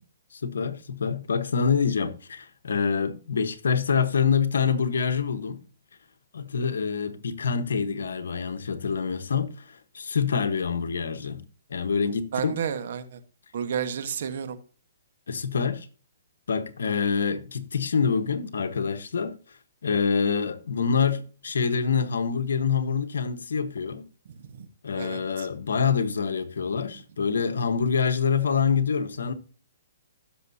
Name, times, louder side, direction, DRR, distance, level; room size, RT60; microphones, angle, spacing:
voice 1, 0.3-5.6 6.3-11.4 11.7-12.5 15.3-15.9 16.5-19.3 19.8-24.0 24.8-29.3, left 6 dB, 80° left, 1.2 m, -26 dB
voice 2, 12.3-13.2 13.5-14.6 24.5-24.7 25.0-25.5, right 8 dB, 55° right, 1.3 m, -31 dB
16.0 x 6.6 x 2.8 m
hypercardioid pair, 150°, 0 cm